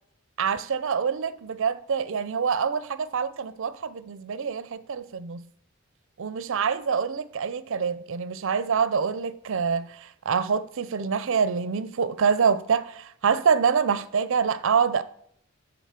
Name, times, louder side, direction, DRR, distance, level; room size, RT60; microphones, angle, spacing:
voice 1, 0.4-5.4 6.2-15.0, right 6 dB, 65° right, 0.5 m, -26 dB
10.5 x 3.9 x 5.8 m
head